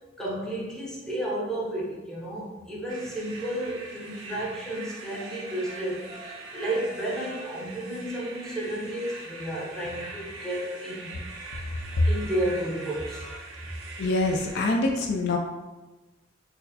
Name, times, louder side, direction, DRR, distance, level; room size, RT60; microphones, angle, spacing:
voice 1, 0.2-11.2 12.1-13.3, right 1 dB, 5° left, -6 dB, 0.6 m, -32 dB
sound 1, 2.9-14.8, right 3 dB, 90° right, 0.5 m, -42 dB
voice 2, 14.0-15.4, left 2 dB, 55° left, 1 dB, 0.3 m, -24 dB
4.3 x 2.1 x 2.6 m, 1.2 s
head